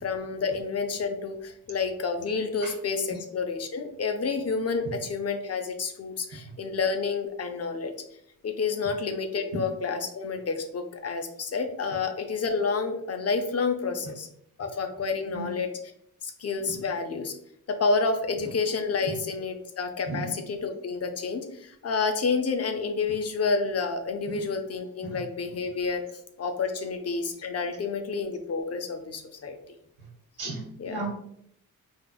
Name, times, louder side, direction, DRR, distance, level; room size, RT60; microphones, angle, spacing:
voice 1, 0.0-7.9 8.4-14.3 14.6-15.7 16.2-17.4 17.7-26.0 26.4-29.6 30.8-31.0, left 4 dB, 40° left, 6 dB, 0.5 m, -29 dB
voice 2, 30.4-31.1, right 2 dB, 85° right, 1 dB, 1.0 m, -35 dB
3.5 x 2.8 x 2.2 m, 0.72 s
cardioid pair, 65°, 37 cm